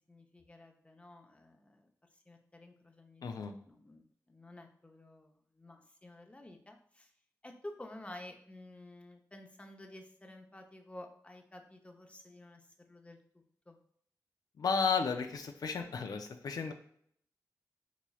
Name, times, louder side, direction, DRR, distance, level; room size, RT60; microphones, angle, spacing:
voice 1, 0.1-7.1 7.4-13.2 13.7-13.8, left 1 dB, 20° left, 3 dB, 0.6 m, -52 dB
voice 2, 3.2-3.5 14.6-16.7, left 5 dB, 75° left, 6 dB, 0.4 m, -33 dB
4.3 x 3.0 x 2.3 m, 0.65 s
cardioid pair, 45°, 7 cm